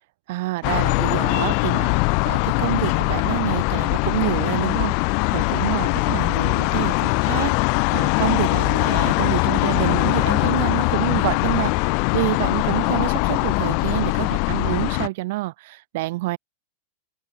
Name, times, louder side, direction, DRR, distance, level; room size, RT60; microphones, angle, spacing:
voice 1, 0.3-11.7 12.1-16.4, right 20 dB, 50° right, 1.1 m, -27 dB
sound 1, 0.6-15.1, left 40 dB or more, 45° left, 0.7 m, -21 dB
figure-of-eight pair, 90°, 0 cm